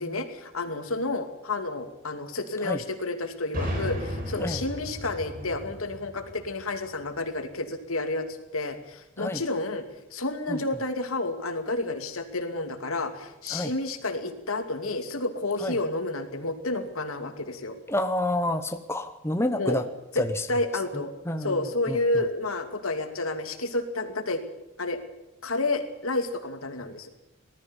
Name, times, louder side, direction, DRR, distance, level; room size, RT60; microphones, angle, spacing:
voice 1, 0.0-8.3 8.5-9.8 10.1-17.8 19.6-19.8 20.1-20.2 20.5-21.1 21.4-24.4 24.8-25.0 25.4-27.1, left 2 dB, 85° left, 7 dB, 2.5 m, -30 dB
sound 1, 3.5-7.2, equal, 40° right, 4.9 m, -35 dB
voice 2, 17.9-19.8 20.2-20.5 21.3-21.6 21.9-22.0, left 1 dB, 10° left, 7 dB, 0.9 m, -28 dB
19.5 x 13.5 x 10.0 m, 0.96 s
head